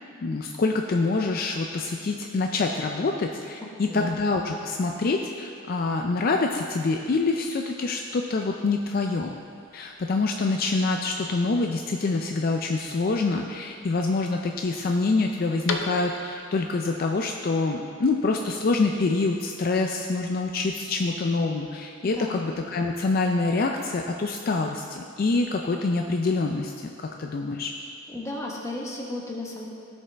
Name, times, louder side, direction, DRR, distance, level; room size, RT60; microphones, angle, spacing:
voice 1, 0.2-9.4 9.7-26.7 27.0-27.7, left 3 dB, 50° left, 3 dB, 0.4 m, -26 dB
sound 1, 8.0-16.5, left 4 dB, 80° left, 0.7 m, -41 dB
voice 2, 22.0-22.4 28.1-29.7, left 2 dB, 15° left, -3 dB, 1.2 m, -34 dB
16.0 x 5.3 x 3.3 m, 2.4 s
head